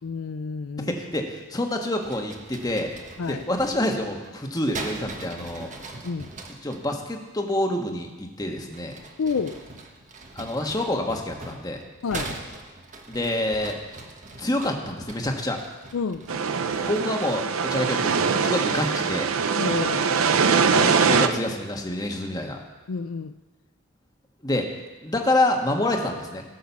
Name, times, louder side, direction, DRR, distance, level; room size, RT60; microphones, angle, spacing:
voice 1, 0.0-0.9 3.2-3.4 6.0-6.3 9.2-9.6 12.0-12.3 15.9-16.2 19.6-20.2 22.9-23.3, left 5 dB, 80° left, 11 dB, 0.5 m, -29 dB
voice 2, 0.9-2.9 3.3-5.7 6.6-9.0 10.3-11.8 13.1-13.8 14.4-15.6 16.8-19.3 20.6-22.6 24.4-24.7 25.0-26.4, left 1 dB, 20° left, 2 dB, 1.4 m, -27 dB
sound 1, 2.0-6.8 8.6-17.2, right 2 dB, 35° right, 1.3 m, -41 dB
sound 2, 16.3-21.3, right 5 dB, 80° right, 0.7 m, -22 dB
17.5 x 6.3 x 7.2 m, 1.2 s
head